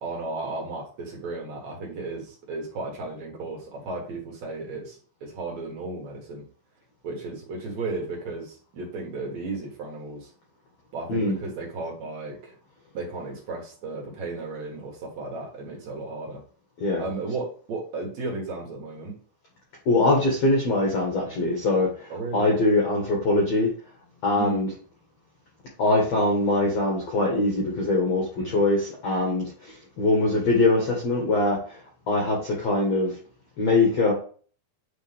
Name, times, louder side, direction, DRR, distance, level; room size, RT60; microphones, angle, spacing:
voice 1, 0.0-6.5 7.0-10.3 10.9-12.5 12.9-16.4 17.0-19.2 22.1-22.5 24.4-24.7 28.4-28.6, right 3 dB, 60° right, -1 dB, 1.9 m, -34 dB
voice 2, 19.8-23.7 24.2-24.7 25.8-31.8 32.1-33.1 33.6-34.1, left 2 dB, 85° left, -1 dB, 1.4 m, -23 dB
9.5 x 3.9 x 3.5 m, 0.42 s
omnidirectional pair, 5.5 m